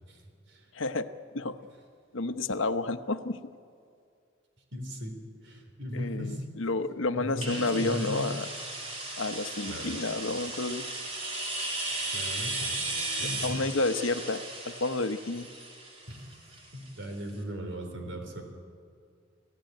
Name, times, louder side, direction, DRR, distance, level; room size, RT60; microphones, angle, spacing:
voice 1, 0.7-1.1 1.3-1.6 2.1-3.4 5.9-8.5 9.2-10.8 13.4-15.5, left 3 dB, 85° left, 10 dB, 1.0 m, -30 dB
voice 2, 4.7-6.4 7.1-8.3 9.7-10.0 12.1-12.8 13.2-13.6 16.1-16.3 16.7-18.4, equal, 70° right, 4 dB, 4.0 m, -37 dB
sound 1, 7.4-17.0, right 2 dB, 30° right, 3.4 m, -36 dB
26.5 x 16.0 x 9.3 m, 2.3 s
head